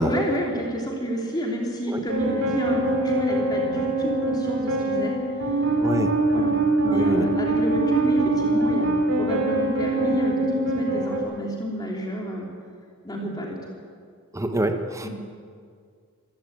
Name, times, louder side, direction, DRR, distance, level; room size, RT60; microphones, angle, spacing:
voice 1, 0.0-5.6 6.3-6.5 6.8-12.5 13.0-13.6 15.0-15.1, equal, 20° left, -1 dB, 3.3 m, -30 dB
sound 1, 2.1-11.2, right 2 dB, 65° right, 4.5 m, -23 dB
voice 2, 5.8-6.1 6.9-7.2 14.3-15.1, right 1 dB, 15° right, 6 dB, 1.4 m, -26 dB
25.5 x 15.0 x 9.3 m, 2.1 s
head